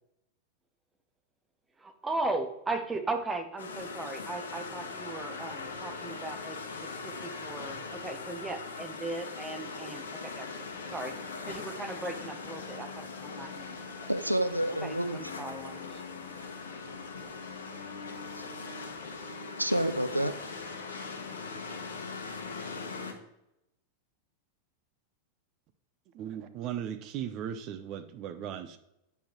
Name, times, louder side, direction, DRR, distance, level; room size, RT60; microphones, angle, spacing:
voice 1, 1.8-6.6 7.0-10.5 10.9-11.1 11.5-14.1 14.8-16.0, right 2 dB, 15° right, 6 dB, 1.0 m, -37 dB
sound 1, 3.6-23.1, left 4 dB, 65° left, 1.1 m, -40 dB
voice 2, 14.1-15.2 18.4-18.5 19.6-20.3, right 1 dB, 90° right, 12 dB, 0.4 m, -29 dB
voice 3, 26.1-28.8, right 9 dB, 40° right, 10 dB, 0.6 m, -37 dB
8.7 x 5.6 x 3.1 m, 0.84 s
figure-of-eight pair, 90°, 0 cm